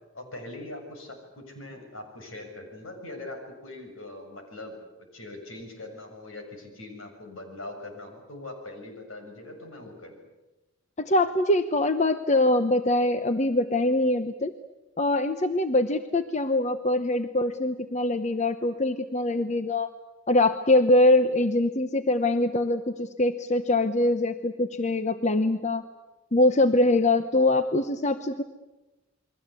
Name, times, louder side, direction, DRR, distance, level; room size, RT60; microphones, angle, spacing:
voice 1, 0.1-4.8 5.1-10.2, left 2 dB, 75° left, 4 dB, 6.8 m, -41 dB
voice 2, 11.0-14.5 15.0-19.9 20.3-25.8 26.3-28.4, left 2 dB, 35° left, 9 dB, 0.9 m, -23 dB
29.5 x 22.5 x 8.3 m, 1.1 s
head